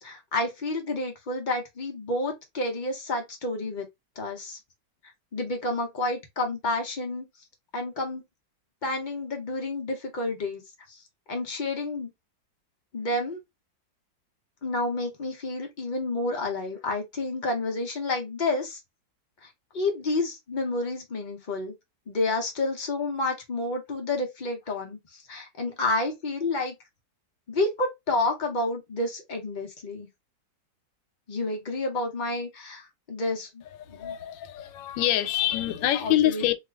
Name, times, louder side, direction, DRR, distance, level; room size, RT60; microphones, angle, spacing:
voice 1, 0.0-3.9 4.2-4.6 5.3-7.3 7.7-8.2 8.8-10.6 10.9-11.0 11.3-12.1 12.9-13.4 14.6-18.8 19.4-19.5 19.7-21.7 22.1-26.8 27.5-30.1 31.3-33.6 33.9-34.1 35.9-36.4, left 2 dB, 70° left, 0.4 m, -30 dB
voice 2, 33.8-36.6, left 13 dB, 85° left, 1.3 m, -26 dB
2.8 x 2.4 x 3.3 m
omnidirectional pair, 1.9 m